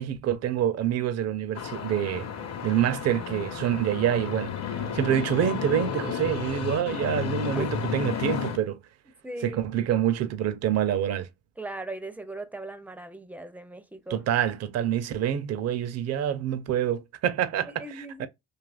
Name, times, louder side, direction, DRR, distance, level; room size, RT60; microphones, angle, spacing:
voice 1, 0.0-2.3 2.6-8.8 9.4-11.3 14.1-18.3, right 10 dB, 60° right, 0.5 m, -27 dB
sound 1, 1.5-8.6, left 7 dB, 55° left, 0.8 m, -32 dB
voice 2, 9.2-9.6 11.6-14.2 17.6-18.3, right 2 dB, 5° right, 0.4 m, -38 dB
2.8 x 2.4 x 2.3 m
cardioid pair, 90°, 30 cm